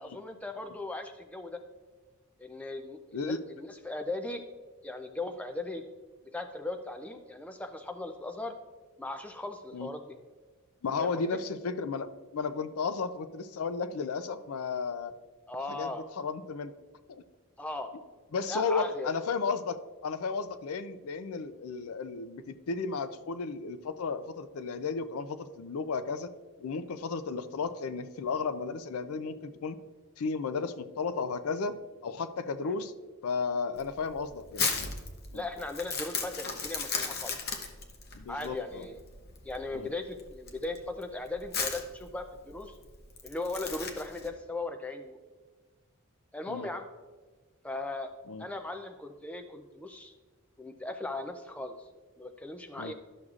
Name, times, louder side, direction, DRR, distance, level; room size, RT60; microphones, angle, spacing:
voice 1, 0.0-1.6 2.4-4.4 4.8-5.8 6.3-8.5 9.0-10.1 11.0-11.2 15.5-16.0 17.6-17.9 18.5-19.2 32.6-32.8 35.3-37.4 38.3-39.0 39.4-42.8 43.2-45.2 46.3-46.8 47.6-48.1 48.4-50.1 50.6-51.8 52.2-52.9, left 2 dB, 5° left, 5 dB, 0.4 m, -38 dB
voice 2, 10.8-15.1 15.7-16.7 17.1-17.2 18.3-26.3 26.6-29.8 30.2-31.8 32.0-32.9 33.2-34.7 35.3-35.4 38.1-38.9 39.7-39.9 46.5-46.7 48.3-48.4 52.8-52.9, left 4 dB, 75° left, 12 dB, 0.4 m, -34 dB
Crumpling crinkling, 33.8-44.3, left 5 dB, 45° left, 0.8 m, -36 dB
12.0 x 6.3 x 2.4 m, 1.4 s
head